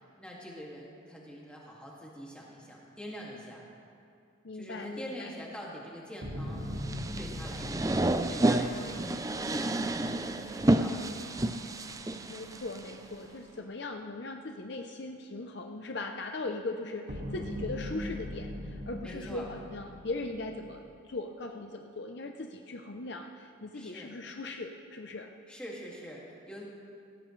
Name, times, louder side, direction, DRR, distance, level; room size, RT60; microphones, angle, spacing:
voice 1, 0.0-3.6 4.5-6.7 7.1-9.9 10.6-11.4 19.0-19.5 23.7-24.1 25.5-26.6, equal, 5° left, -4 dB, 2.2 m, -45 dB
voice 2, 4.4-5.3 12.3-25.3, left 2 dB, 55° left, 4 dB, 0.7 m, -39 dB
sound 1, 6.2-10.5 17.1-20.8, left 1 dB, 60° right, 2.1 m, -40 dB
sound 2, 6.8-12.9, right 1 dB, 15° right, 0.4 m, -30 dB
sound 3, 8.3-13.6, right 4 dB, 80° right, 2.2 m, -50 dB
18.5 x 16.5 x 3.2 m, 2.5 s
head